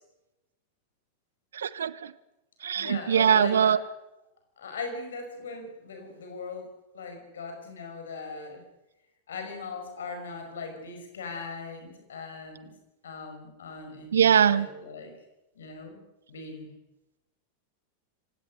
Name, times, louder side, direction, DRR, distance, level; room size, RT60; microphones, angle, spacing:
voice 1, 1.5-2.1 2.6-3.8 14.1-14.7, right 8 dB, 65° right, 19 dB, 0.8 m, -22 dB
voice 2, 2.8-3.8 4.6-8.6 9.3-12.7 13.0-15.1 15.6-16.0 16.3-16.7, left 4 dB, 65° left, 5 dB, 5.6 m, -39 dB
26.0 x 17.0 x 6.5 m, 0.95 s
figure-of-eight pair, 90°, 0 cm